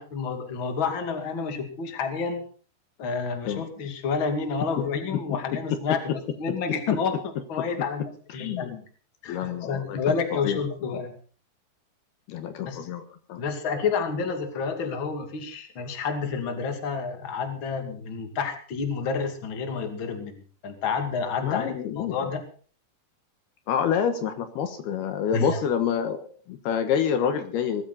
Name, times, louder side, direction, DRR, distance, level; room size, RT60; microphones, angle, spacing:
voice 1, 0.0-2.4 3.0-8.7 9.2-11.1 12.7-12.8 13.4-22.4 25.3-25.6, left 5 dB, 35° left, 6 dB, 2.6 m, -29 dB
voice 2, 8.3-8.8 9.3-10.6 12.3-13.0 13.3-13.4 21.4-22.2 23.7-27.8, left 8 dB, 75° left, 8 dB, 3.1 m, -27 dB
21.0 x 14.0 x 4.2 m, 0.41 s
omnidirectional pair, 4.8 m